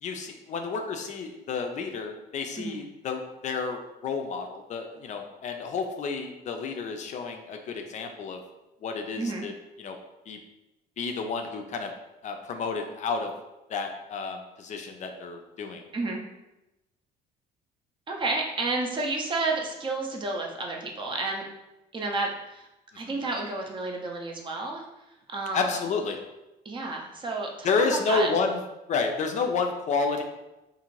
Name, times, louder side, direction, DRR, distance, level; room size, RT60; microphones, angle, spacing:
voice 1, 0.0-8.4 8.8-9.5 9.8-9.9 10.3-10.4 11.0-11.9 12.2-13.3 13.7-15.8 23.0-23.1 25.5-26.2 27.6-28.6 28.9-30.2, left 4 dB, 45° left, 4 dB, 0.4 m, -30 dB
voice 2, 18.1-21.5 21.9-22.7 23.0-24.8 25.3-25.8 26.6-28.3, right 3 dB, 30° right, 1 dB, 0.5 m, -31 dB
2.5 x 2.5 x 3.1 m, 0.97 s
cardioid pair, 110°, 17 cm